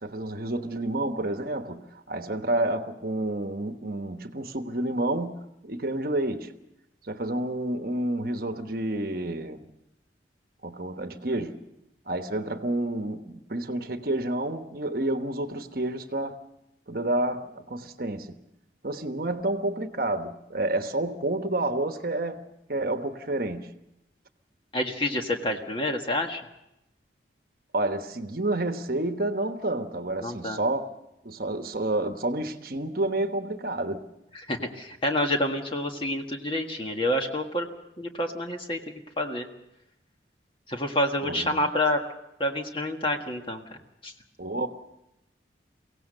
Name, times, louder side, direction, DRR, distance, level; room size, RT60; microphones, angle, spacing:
voice 1, 0.0-6.5 7.0-9.6 10.6-11.6 12.1-16.4 16.9-18.4 18.8-22.4 22.7-23.7 27.7-30.9 31.2-34.1 41.2-41.6 44.4-44.7, right 1 dB, 55° right, 1.2 m, -29 dB
voice 2, 24.7-26.4 30.2-30.6 34.3-37.7 38.0-39.5 40.7-42.0 42.4-44.1, left 1 dB, 30° left, 1.6 m, -28 dB
23.5 x 17.0 x 6.6 m
head